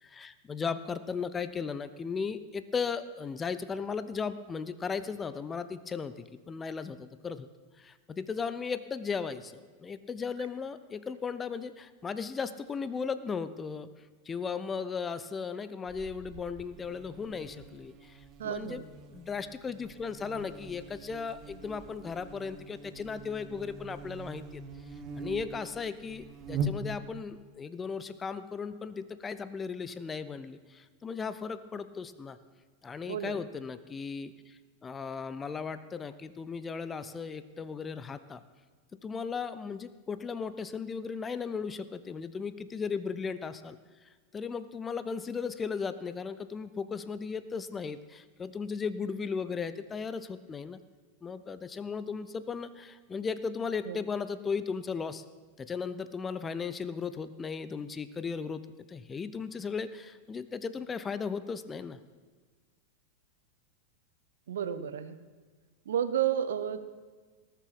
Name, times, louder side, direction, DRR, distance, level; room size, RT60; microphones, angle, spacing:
voice 1, 0.0-7.5 7.8-13.9 14.3-18.8 19.1-24.6 25.2-32.4 32.8-38.4 39.0-43.8 44.3-50.8 51.2-55.2 55.6-58.6 58.9-62.0, left 5 dB, 20° left, 14 dB, 0.6 m, -36 dB
Buzz, 15.9-27.3, right 3 dB, 30° right, 1.1 m, -42 dB
voice 2, 18.4-18.8 33.1-33.4 53.9-54.0 64.5-65.2 65.9-66.8, right 9 dB, 60° right, 12 dB, 0.8 m, -31 dB
18.5 x 6.8 x 6.0 m, 1.4 s
figure-of-eight pair, 90°, 0 cm